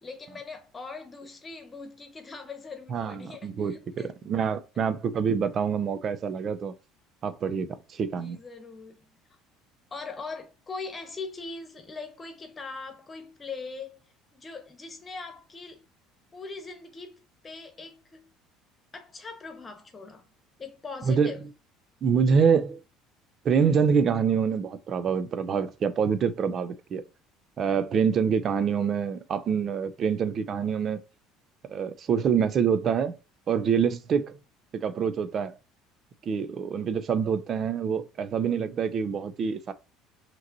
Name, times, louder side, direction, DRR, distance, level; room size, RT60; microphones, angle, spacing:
voice 1, 0.0-4.1 8.1-9.0 9.9-14.0 14.3-15.8 16.3-18.2 18.9-20.2 20.6-21.4, left 4 dB, 25° left, 1.3 m, -41 dB
voice 2, 2.9-6.7 7.2-8.4 21.1-21.3 22.0-22.8 23.4-27.0 27.6-31.0 31.7-33.1 33.5-34.4 34.7-35.5 36.3-39.7, right 6 dB, 45° right, 0.6 m, -26 dB
5.7 x 3.0 x 2.7 m
hypercardioid pair, 65°, 0 cm